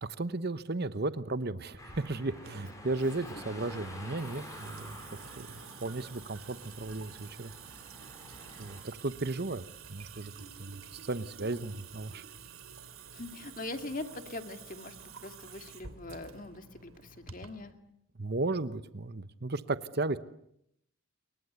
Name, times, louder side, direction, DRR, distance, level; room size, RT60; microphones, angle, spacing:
voice 1, 0.0-5.0 5.4-7.5 8.6-9.6 9.9-10.3 10.6-10.8 11.1-12.2 18.2-20.2, right 2 dB, 50° right, 13 dB, 1.0 m, -35 dB
Water tap faucet / Sink (filling or washing) / Drip, 1.7-17.7, right 6 dB, 80° right, 2.9 m, -50 dB
sound 1, 1.8-8.8, left 1 dB, 15° left, 6.8 m, -48 dB
voice 2, 13.1-17.7, left 2 dB, 40° left, 7 dB, 2.2 m, -42 dB
29.0 x 23.0 x 8.1 m, 0.76 s
head